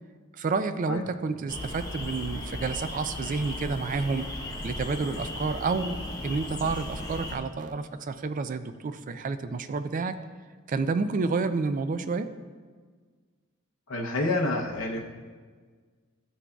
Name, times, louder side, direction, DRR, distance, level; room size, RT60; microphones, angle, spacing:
voice 1, 0.4-4.4 4.6-10.2 10.7-12.3, right 4 dB, 40° right, 11 dB, 0.3 m, -30 dB
sound 1, 1.5-7.4, left 1 dB, 15° left, 0.8 m, -36 dB
voice 2, 13.9-15.0, left 2 dB, 65° left, -2 dB, 0.7 m, -28 dB
12.5 x 6.0 x 2.3 m, 1.5 s
head